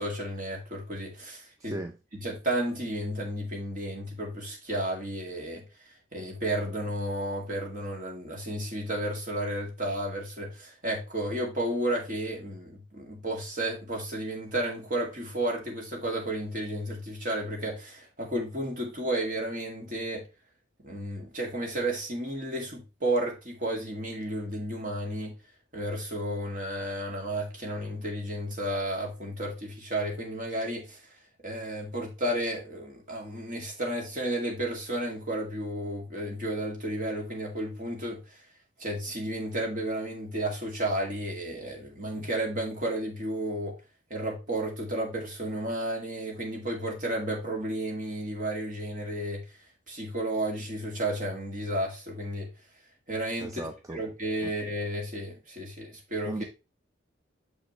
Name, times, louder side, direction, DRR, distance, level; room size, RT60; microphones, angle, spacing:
voice 1, 0.0-1.8 2.2-5.6 6.1-20.2 20.8-25.4 25.7-31.0 31.4-38.2 38.8-43.8 44.1-49.4 49.9-52.5 53.1-53.6 53.9-56.3, right 1 dB, 45° right, 2.2 m, -32 dB
voice 2, 1.6-1.9 53.4-54.0 54.4-54.5 56.2-56.4, right 2 dB, 15° right, 0.4 m, -36 dB
6.4 x 6.2 x 3.1 m
head